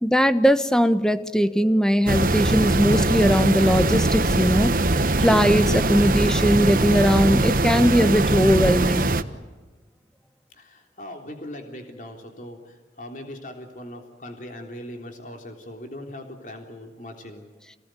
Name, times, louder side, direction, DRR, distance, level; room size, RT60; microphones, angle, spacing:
voice 1, 0.0-4.7 5.2-9.1, equal, 5° left, 11 dB, 1.1 m, -20 dB
sound 1, 2.1-9.2, right 2 dB, 50° right, 1.3 m, -21 dB
voice 2, 10.5-17.4, left 1 dB, 45° left, 4 dB, 3.5 m, -40 dB
29.0 x 19.5 x 9.2 m, 1.3 s
head